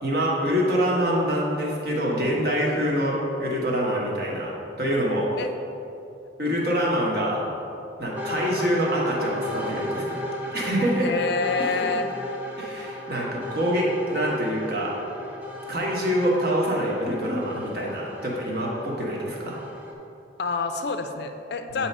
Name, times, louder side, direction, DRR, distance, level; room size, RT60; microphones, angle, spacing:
voice 1, 0.0-5.3 6.4-7.4 8.0-10.2 10.5-11.1 11.6-11.9 12.6-14.9 15.7-19.6 21.7-21.9, equal, 55° right, -3 dB, 1.2 m, -25 dB
voice 2, 6.4-6.9 11.0-12.1 20.4-21.9, left 4 dB, 60° left, 6 dB, 0.4 m, -28 dB
sound 1, 8.2-19.9, left 1 dB, 10° right, 0.7 m, -35 dB
8.4 x 2.9 x 5.4 m, 2.9 s
head